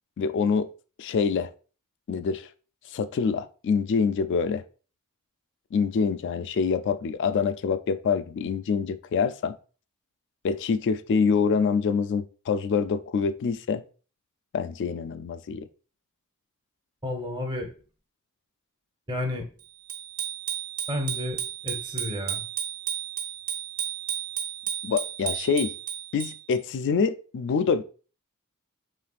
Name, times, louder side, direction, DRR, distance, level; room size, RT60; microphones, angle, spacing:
voice 1, 0.2-0.7 1.0-1.5 2.1-2.5 2.9-4.6 5.7-9.6 10.4-13.8 14.5-15.7 24.8-25.7 26.1-27.8, left 5 dB, 55° left, 0.3 m, -25 dB
voice 2, 17.0-17.7 19.1-19.5 20.9-22.4, left 1 dB, 20° right, 0.8 m, -31 dB
Bicycle bell, 19.9-26.6, right 9 dB, 90° right, 1.2 m, -33 dB
5.0 x 3.2 x 2.4 m
head